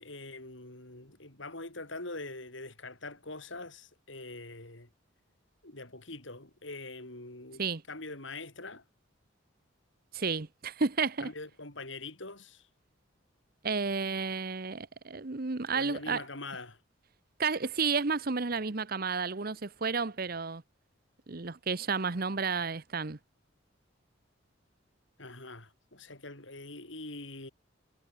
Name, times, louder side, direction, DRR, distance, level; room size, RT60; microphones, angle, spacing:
voice 1, 0.0-4.9 5.6-7.6 7.9-8.8 11.2-12.7 15.7-16.8 25.2-27.5, left 2 dB, 70° left, 6.1 m, -43 dB
voice 2, 10.1-11.3 13.6-16.2 17.4-20.6 21.3-23.2, right 4 dB, 50° right, 0.9 m, -31 dB
head